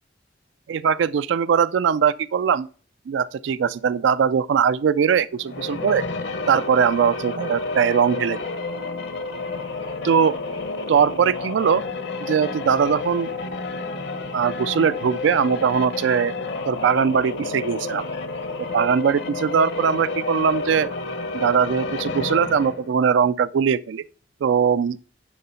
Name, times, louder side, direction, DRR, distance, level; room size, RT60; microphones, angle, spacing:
voice 1, 0.7-2.7 3.1-6.0 6.5-8.4 10.0-10.4 10.9-11.8 12.3-13.3 14.3-16.3 16.7-18.0 18.7-20.9 21.3-24.0 24.4-25.0, right 7 dB, 75° right, 0.3 m, -20 dB
sound 1, 5.4-22.9, left 3 dB, 65° left, 1.2 m, -30 dB
11.0 x 3.7 x 5.6 m
head